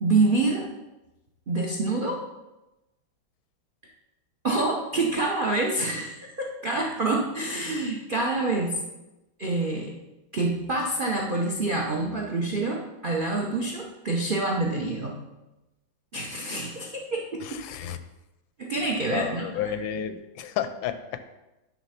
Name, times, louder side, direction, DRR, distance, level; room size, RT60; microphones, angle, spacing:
voice 1, 0.0-0.7 1.5-2.2 4.4-8.8 9.4-9.9 10.3-15.2 16.1-17.4 18.6-19.8, right 2 dB, 80° right, -1 dB, 0.4 m, -27 dB
voice 2, 17.4-18.0 19.1-21.2, left 9 dB, 80° left, 10 dB, 1.3 m, -32 dB
9.9 x 3.3 x 5.7 m, 1.0 s
omnidirectional pair, 2.2 m